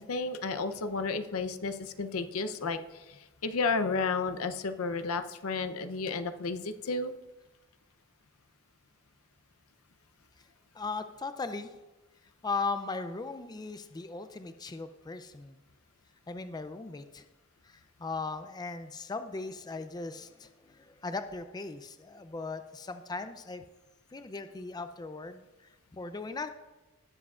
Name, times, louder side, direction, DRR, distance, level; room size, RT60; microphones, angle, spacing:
voice 1, 0.0-7.1, left 4 dB, 75° left, 9 dB, 0.7 m, -32 dB
voice 2, 10.7-11.7 12.4-15.6 16.3-17.2 17.6-23.6 24.1-26.5, left 3 dB, 20° left, 9 dB, 0.4 m, -38 dB
18.5 x 7.2 x 2.4 m, 1.1 s
head